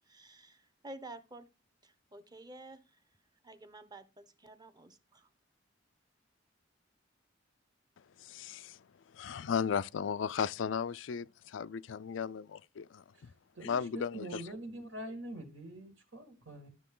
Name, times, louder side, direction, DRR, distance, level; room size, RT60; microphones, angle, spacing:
voice 1, 0.1-1.5 1.8-2.8 3.4-5.3, right 2 dB, 20° right, 1.0 m, -51 dB
voice 2, 8.2-8.8 9.1-13.3 13.6-14.4, left 7 dB, 75° left, 0.4 m, -35 dB
voice 3, 13.6-16.7, right 1 dB, 75° right, 2.1 m, -44 dB
12.0 x 6.6 x 3.8 m
head